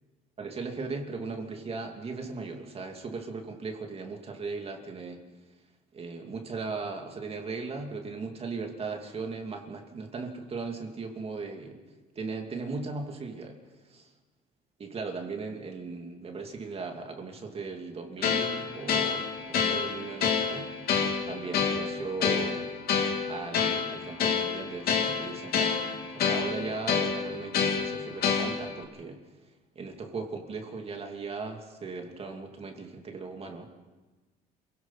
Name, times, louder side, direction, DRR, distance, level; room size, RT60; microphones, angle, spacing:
voice 1, 0.4-5.2 5.9-11.8 12.1-13.5 13.9-14.0 14.8-20.7 21.3-22.7 23.3-25.8 26.1-29.2 29.7-33.7, right 4 dB, 35° right, 3 dB, 2.7 m, -38 dB
sound 1, 18.2-28.8, left 6 dB, 65° left, 3.1 m, -28 dB
27.5 x 17.5 x 5.8 m, 1.2 s
cardioid pair, 110°, 17 cm